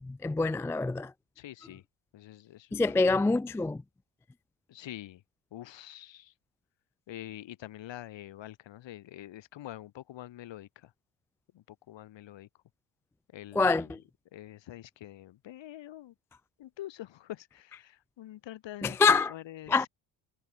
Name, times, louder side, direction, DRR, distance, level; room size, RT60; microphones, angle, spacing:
voice 1, 0.0-1.1 2.7-3.8 13.6-14.0 18.8-19.3 19.7-19.9, left 4 dB, 5° left, 0.4 m, -26 dB
voice 2, 1.4-1.8 2.1-3.2 4.7-5.2 5.5-6.3 7.1-10.9 11.5-12.5 13.3-14.0 14.3-16.1 16.6-19.9, left 13 dB, 60° left, 7.9 m, -46 dB
supercardioid pair, 95°, 50 cm